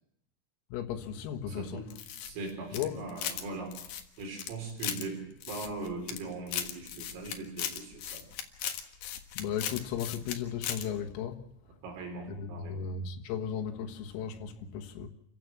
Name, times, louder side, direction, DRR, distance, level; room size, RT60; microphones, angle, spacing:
voice 1, 0.7-1.9 2.7-2.9 9.4-11.5 12.3-15.1, left 8 dB, 90° left, 4.2 m, -35 dB
voice 2, 1.5-1.9 2.3-3.9 4.2-8.3 11.8-12.9, right 3 dB, 80° right, 6.7 m, -40 dB
sound 1, 1.9-3.5 3.7-5.0 5.4-6.2 6.5-10.4 10.6-10.9, left 10 dB, 65° left, 3.1 m, -37 dB
28.5 x 16.0 x 7.4 m
omnidirectional pair, 5.9 m